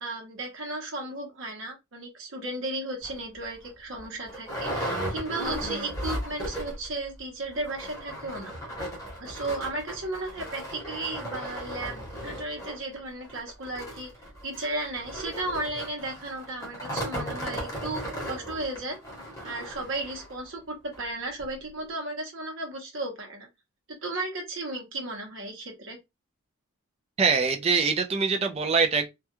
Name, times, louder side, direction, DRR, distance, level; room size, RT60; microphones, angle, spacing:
voice 1, 0.0-8.5 9.2-14.1 14.4-19.0 19.4-23.5 24.0-26.0, right 2 dB, 65° right, 0.8 m, -35 dB
sound 1, 3.0-3.2 3.7-3.8 4.0-6.9 7.2-7.3 7.6-20.4 20.9-21.0 21.4-21.5, equal, 15° left, 0.8 m, -36 dB
voice 2, 27.2-29.1, right 5 dB, 30° right, 0.4 m, -23 dB
2.3 x 2.2 x 2.9 m
head